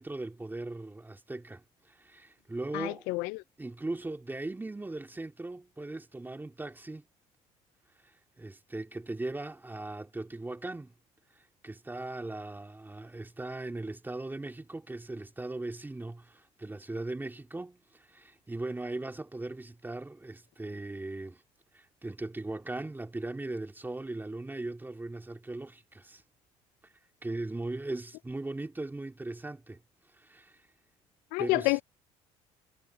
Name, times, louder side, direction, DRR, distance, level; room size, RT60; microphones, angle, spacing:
voice 1, 0.0-3.1 3.6-7.0 8.0-10.9 11.3-21.4 21.7-26.2 26.8-26.9 27.2-29.8 30.1-30.6 31.4-31.8, right 2 dB, 15° right, 2.4 m, -39 dB
voice 2, 2.7-3.4 31.3-31.8, left 24 dB, 85° left, 0.5 m, -29 dB
supercardioid pair, 90°, 15 cm